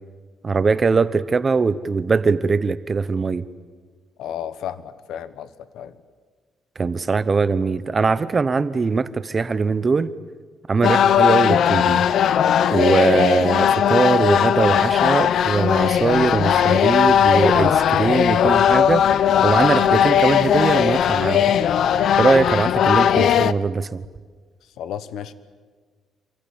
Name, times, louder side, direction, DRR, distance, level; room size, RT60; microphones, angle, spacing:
voice 1, 0.4-3.4 6.8-10.1 10.7-12.1 12.7-21.4 22.2-24.0, right 4 dB, 25° right, 15 dB, 0.9 m, -21 dB
voice 2, 4.2-5.5 5.7-5.9 24.8-25.3, left 9 dB, 75° left, 13 dB, 1.3 m, -32 dB
sound 1, 10.8-23.5, left 9 dB, 55° left, 0.7 m, -18 dB
27.5 x 23.5 x 8.8 m, 1.5 s
cardioid pair, 175°, 0 cm